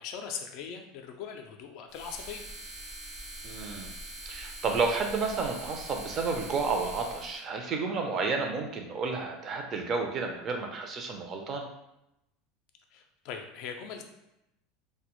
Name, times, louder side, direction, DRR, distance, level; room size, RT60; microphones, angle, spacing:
voice 1, 0.0-2.5 12.9-14.0, left 7 dB, 65° left, 4 dB, 0.3 m, -40 dB
sound 1, 1.9-7.4, right 1 dB, 65° right, 0.9 m, -43 dB
voice 2, 3.4-3.9 4.3-11.7, right 4 dB, 40° right, 3 dB, 0.4 m, -31 dB
2.1 x 2.0 x 2.9 m, 0.86 s
supercardioid pair, 105°, 0 cm